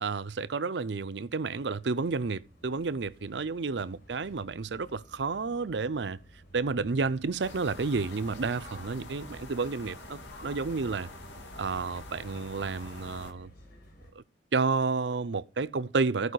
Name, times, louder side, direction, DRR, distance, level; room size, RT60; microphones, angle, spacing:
voice 1, 0.0-6.2 6.5-11.1 11.6-13.5 14.1-14.2 14.5-16.3, right 4 dB, 70° right, 0.6 m, -31 dB
sound 1, 1.4-14.1, right 1 dB, 55° left, 5.2 m, -54 dB
sound 2, 7.4-13.3, left 2 dB, 90° left, 2.3 m, -45 dB
14.0 x 4.9 x 6.5 m
head